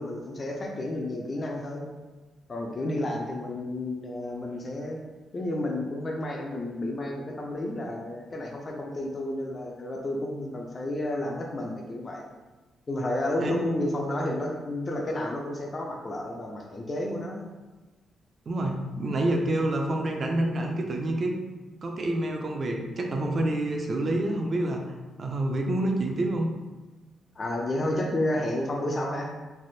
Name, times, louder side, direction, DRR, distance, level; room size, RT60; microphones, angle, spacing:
voice 1, 0.0-1.9 2.5-5.0 5.3-12.2 12.9-17.4 27.4-29.3, left 1 dB, 30° left, 0 dB, 0.4 m, -31 dB
voice 2, 18.5-21.3 21.8-24.8 25.2-26.5, right 1 dB, 40° right, 1 dB, 0.4 m, -27 dB
3.3 x 2.4 x 2.6 m, 1.2 s
cardioid pair, 120°, 0 cm